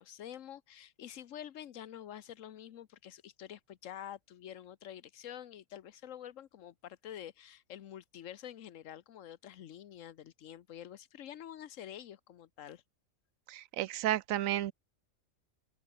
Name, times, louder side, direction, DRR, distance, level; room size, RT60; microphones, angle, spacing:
voice 1, 0.0-12.8, left 10 dB, 75° left, 1.2 m, -48 dB
voice 2, 13.5-14.7, right 13 dB, 90° right, 1.0 m, -32 dB
open air
omnidirectional pair, 1.4 m